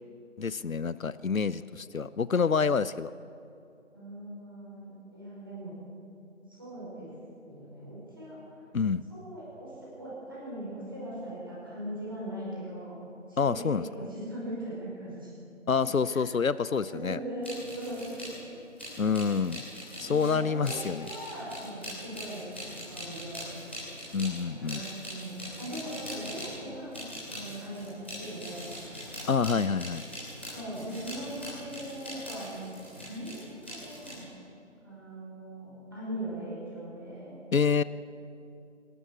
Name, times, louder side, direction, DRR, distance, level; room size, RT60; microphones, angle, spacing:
voice 1, 0.4-3.1 8.7-9.0 13.4-14.1 15.7-17.2 19.0-19.6 20.0-21.1 24.1-24.8 29.3-30.0 37.5-37.8, left 5 dB, 90° left, 17 dB, 0.8 m, -27 dB
voice 2, 3.9-5.8 6.5-7.1 7.5-8.4 9.1-13.0 13.3-15.3 16.1-16.2 16.9-17.5 17.8-18.2 20.0-22.4 22.9-23.5 24.3-28.7 30.4-32.6 33.0-34.3 34.8-37.4, right 1 dB, 15° right, -8 dB, 5.3 m, -40 dB
sound 1, 17.4-18.3 18.8-26.6 26.9-34.2, equal, 10° left, 3.1 m, -42 dB
26.5 x 12.5 x 8.5 m, 2.7 s
figure-of-eight pair, 180°, 40 cm